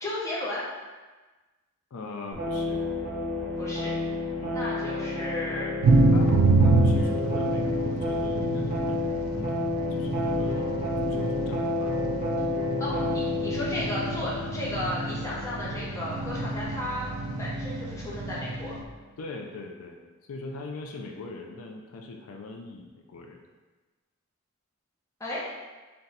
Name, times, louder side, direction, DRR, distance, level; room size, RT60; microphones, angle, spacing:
voice 1, 0.0-0.7 3.6-3.9 4.5-5.7 12.4-12.5 12.8-17.1 17.4-18.8 25.2-25.4, left 1 dB, 15° left, -7 dB, 0.8 m, -34 dB
voice 2, 1.9-2.8 4.4-4.7 6.1-9.0 9.3-12.0 19.2-20.0 20.3-23.4, left 3 dB, 85° left, 3 dB, 0.4 m, -40 dB
sound 1, 2.3-19.1, left 2 dB, 30° right, 1.1 m, -31 dB
sound 2, 5.8-18.8, right 3 dB, 85° right, 0.3 m, -27 dB
3.8 x 2.2 x 4.1 m, 1.2 s
head